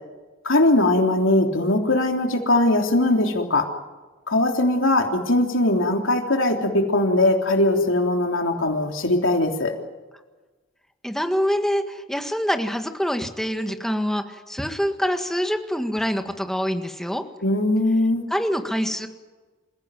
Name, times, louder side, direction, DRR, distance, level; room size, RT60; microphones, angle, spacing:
voice 1, 0.4-3.6 4.3-9.7 17.4-18.2, left 1 dB, 75° left, 3 dB, 3.3 m, -20 dB
voice 2, 11.0-17.2 18.3-19.1, equal, ahead, 6 dB, 1.8 m, -25 dB
28.0 x 16.0 x 9.2 m, 1.2 s
head